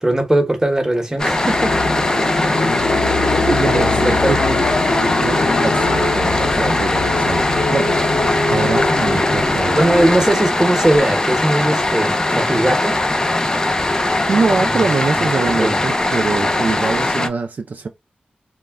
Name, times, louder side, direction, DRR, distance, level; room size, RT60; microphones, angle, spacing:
voice 1, 0.0-2.8 3.7-4.4 9.7-13.0 14.5-14.7 15.6-15.8, right 1 dB, 15° right, 0.8 m, -19 dB
sound 1, 1.1-10.5, left 3 dB, 90° left, 0.5 m, -22 dB
sound 2, 1.2-17.3, left 2 dB, 20° left, 0.4 m, -20 dB
voice 2, 3.5-9.9 14.3-17.9, right 4 dB, 60° right, 0.3 m, -23 dB
2.1 x 2.1 x 3.4 m
wide cardioid pair, 80°, 3 cm